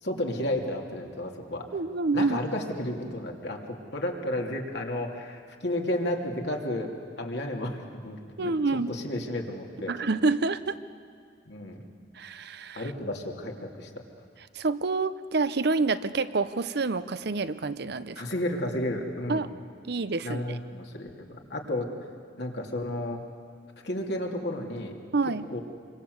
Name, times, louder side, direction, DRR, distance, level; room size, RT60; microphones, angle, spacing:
voice 1, 0.0-1.7 2.1-6.9 7.2-8.5 8.9-9.9 11.5-11.8 12.7-13.9 18.2-19.4 20.2-21.9 22.4-23.2 23.8-25.0 25.5-25.6, left 1 dB, 65° left, 1 dB, 2.9 m, -32 dB
voice 2, 1.7-2.4 8.4-8.9 9.9-10.8 12.2-12.9 14.5-18.2 19.3-19.5 19.8-20.6 25.1-25.5, right 3 dB, 60° right, 13 dB, 0.7 m, -27 dB
27.0 x 24.0 x 8.0 m, 2.2 s
head